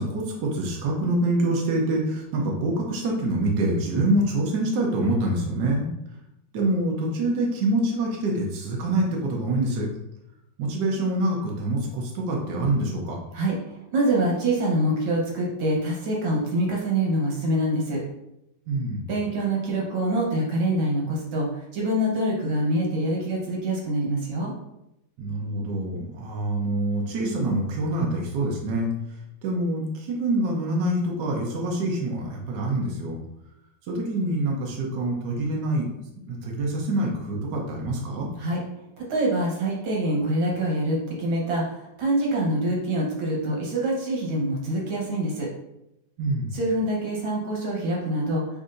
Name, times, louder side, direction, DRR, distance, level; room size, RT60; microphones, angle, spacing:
voice 1, 0.0-5.9 6.5-9.9 10.6-13.2 18.7-19.1 25.2-28.9 29.4-33.2 33.9-35.9 36.3-38.3 46.2-46.6, right 1 dB, 65° right, -1 dB, 1.4 m, -25 dB
voice 2, 13.3-18.0 19.1-24.5 38.4-38.6 39.0-45.5 46.5-48.4, right 1 dB, 90° right, -2 dB, 2.0 m, -25 dB
6.6 x 2.6 x 2.5 m, 0.84 s
omnidirectional pair, 2.1 m